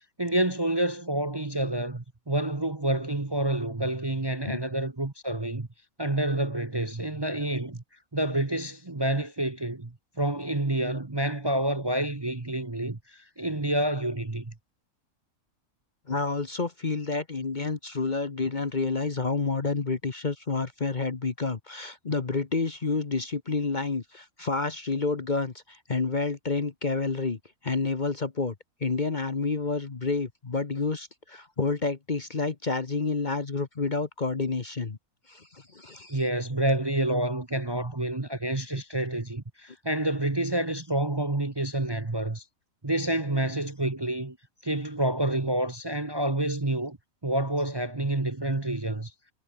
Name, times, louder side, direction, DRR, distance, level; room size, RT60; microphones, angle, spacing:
voice 1, 0.2-5.7 6.0-7.8 8.1-9.9 10.2-14.5 36.1-42.4 42.8-44.4 44.6-47.0 47.2-49.1, right 1 dB, 20° right, 1.0 m, -28 dB
voice 2, 16.1-28.5 28.8-35.0 35.3-36.2, left 4 dB, 35° left, 1.2 m, -29 dB
omnidirectional pair, 1.5 m